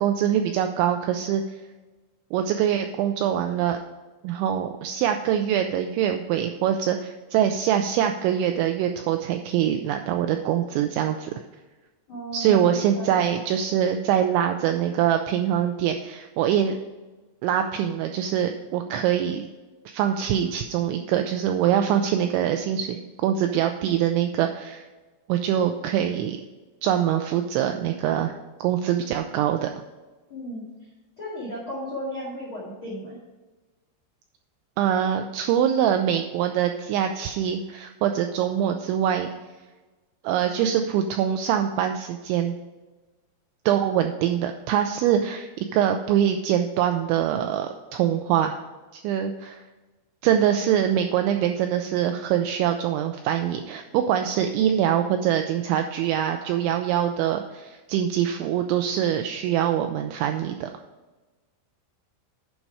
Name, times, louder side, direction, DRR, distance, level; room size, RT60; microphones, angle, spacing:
voice 1, 0.0-1.6 2.3-3.8 4.2-11.3 12.3-16.8 17.4-19.5 19.9-24.9 25.3-26.4 26.8-28.3 28.6-29.7 34.8-39.3 40.2-42.6 43.7-48.6 48.9-49.6 50.2-60.7, right 9 dB, 90° right, 5 dB, 2.6 m, -24 dB
voice 2, 12.1-13.1 30.3-30.7 31.2-33.2, equal, 50° left, -5 dB, 1.5 m, -35 dB
10.0 x 5.4 x 4.9 m, 1.2 s
omnidirectional pair, 5.8 m